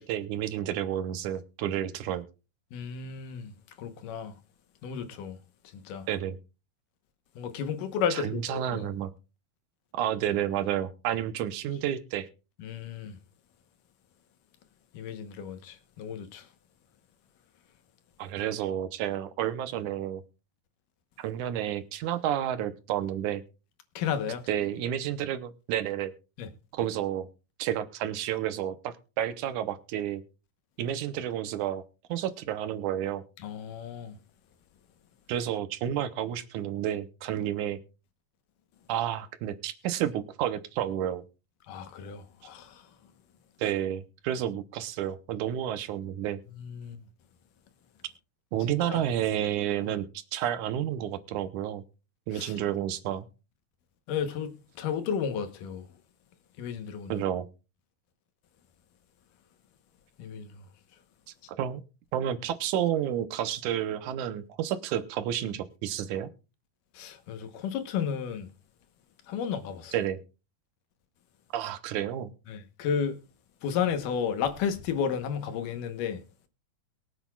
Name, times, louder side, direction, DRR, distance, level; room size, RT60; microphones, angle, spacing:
voice 1, 0.0-2.3 6.1-6.4 8.1-9.1 9.9-12.3 18.2-20.2 21.2-23.4 24.5-26.1 26.7-27.3 27.6-30.2 30.8-31.8 32.1-33.2 35.3-37.8 38.9-41.2 43.6-46.4 48.5-51.8 52.3-53.3 57.1-57.5 61.6-61.8 62.1-66.3 69.9-70.2 71.5-72.3, right 11 dB, 80° right, 2.2 m, -30 dB
voice 2, 2.7-3.5 3.8-4.3 4.8-5.4 5.9-6.1 7.4-8.9 12.6-13.1 14.9-16.4 24.0-24.4 26.4-26.5 33.4-34.1 41.7-42.7 46.6-47.0 48.9-49.0 52.3-52.5 54.1-55.8 56.6-57.1 60.2-60.5 67.0-68.5 69.3-69.9 72.5-73.2 73.6-76.2, left 7 dB, 85° left, 2.7 m, -32 dB
23.0 x 8.1 x 2.3 m
omnidirectional pair, 3.7 m